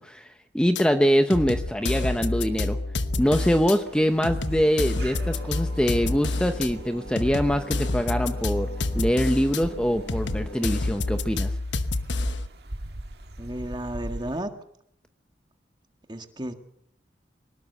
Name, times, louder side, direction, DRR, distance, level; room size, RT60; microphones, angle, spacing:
voice 1, 0.0-2.8 3.2-8.7 9.0-11.5, equal, 5° left, 7 dB, 0.9 m, -24 dB
sound 1, 0.8-0.9 1.3-3.8 4.2-6.7 7.2-9.6 10.1-12.5, left 2 dB, 85° left, 1.1 m, -28 dB
Singing, 1.6-11.3, equal, 30° left, 7.5 m, -44 dB
sound 2, 3.2-14.4, right 1 dB, 65° right, 1.8 m, -41 dB
voice 2, 13.4-14.5 16.1-16.5, right 1 dB, 25° right, 7 dB, 1.8 m, -33 dB
23.5 x 19.5 x 6.7 m, 0.71 s
head